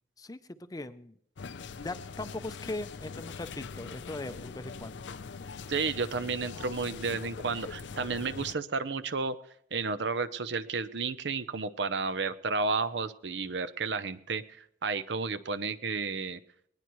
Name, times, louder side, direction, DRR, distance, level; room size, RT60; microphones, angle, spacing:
voice 1, 0.2-1.1 1.7-5.0, left 2 dB, 20° left, 12 dB, 0.6 m, -40 dB
sound 1, 1.4-8.5, left 5 dB, 75° left, 0.6 m, -42 dB
voice 2, 5.7-9.4 9.7-14.4 14.8-16.4, right 4 dB, 70° right, 13 dB, 0.7 m, -32 dB
20.5 x 19.5 x 3.1 m, 0.71 s
head